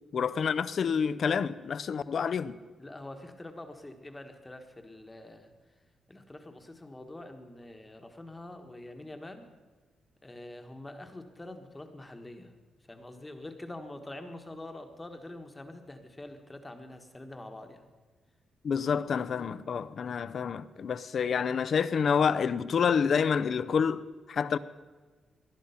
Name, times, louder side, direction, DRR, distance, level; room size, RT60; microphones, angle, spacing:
voice 1, 0.1-2.6 18.6-24.0 24.3-24.6, left 6 dB, 45° left, 0.6 m, -28 dB
voice 2, 2.8-5.5 6.1-9.5 10.2-12.5 12.9-17.9, left 1 dB, 10° left, 1.3 m, -45 dB
19.5 x 11.5 x 5.7 m
wide cardioid pair, 175°, 0 cm